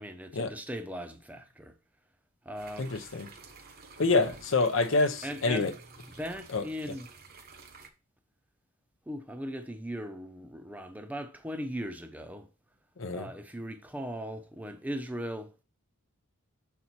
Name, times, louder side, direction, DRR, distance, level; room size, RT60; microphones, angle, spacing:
voice 1, 0.0-1.7 2.4-3.1 5.2-5.7 6.2-7.1 9.1-12.5 13.1-15.5, equal, 5° right, 0.7 m, -38 dB
sound 1, 2.6-7.9, right 4 dB, 45° right, 0.9 m, -51 dB
voice 2, 2.8-3.3 4.0-5.7 6.5-6.7 13.0-13.3, left 3 dB, 60° left, 0.7 m, -27 dB
6.8 x 4.6 x 4.2 m
head